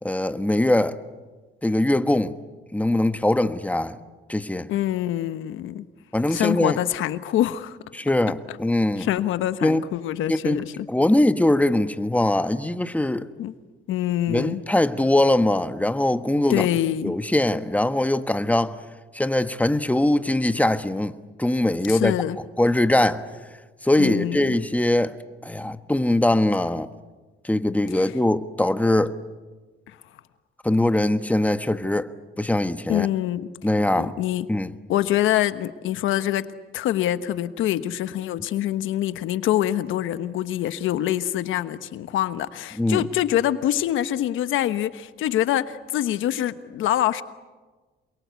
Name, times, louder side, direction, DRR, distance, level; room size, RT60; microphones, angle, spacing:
voice 1, 0.0-1.0 1.6-2.3 2.7-4.0 4.3-4.7 6.1-6.8 7.9-9.1 9.6-9.8 10.3-10.6 10.9-13.3 14.3-16.7 17.0-18.8 19.1-22.1 22.6-23.3 23.8-25.1 25.4-26.9 27.4-29.1 30.6-32.1 32.4-33.1 33.6-34.1 34.5-34.7 42.8-43.1, left 1 dB, 5° left, 1.3 m, -22 dB
voice 2, 4.7-5.9 6.3-7.8 9.0-10.9 13.4-13.5 13.9-14.6 16.5-17.1 21.9-22.4 24.0-24.6 28.0-28.1 29.9-30.0 32.9-33.5 34.0-34.5 34.9-36.5 36.7-47.2, left 12 dB, 85° left, 1.2 m, -25 dB
28.0 x 23.0 x 8.3 m
cardioid pair, 90°, 20 cm